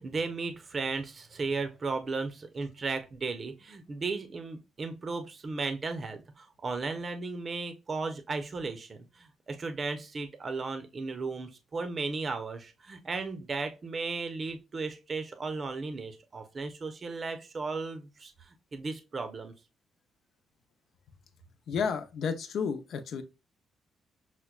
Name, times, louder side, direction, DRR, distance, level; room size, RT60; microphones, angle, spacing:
voice 1, 0.0-18.3 18.7-19.5, right 4 dB, 40° right, 0.6 m, -35 dB
voice 2, 21.7-23.2, left 6 dB, 70° left, 0.6 m, -31 dB
5.8 x 2.1 x 2.2 m
cardioid pair, 90°, 0 cm